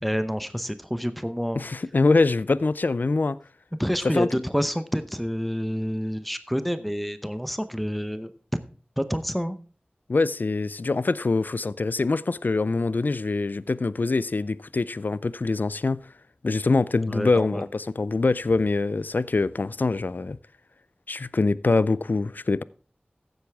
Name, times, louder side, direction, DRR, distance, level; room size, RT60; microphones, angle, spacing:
voice 1, 0.0-1.6 3.8-8.3 9.0-9.6 17.1-17.6, equal, ahead, 0.8 m, -28 dB
voice 2, 1.6-3.4 4.0-4.4 10.1-16.1 16.4-20.4 21.1-22.6, left 3 dB, 60° left, 0.4 m, -24 dB
14.5 x 8.0 x 3.5 m
wide cardioid pair, 60°, 3 cm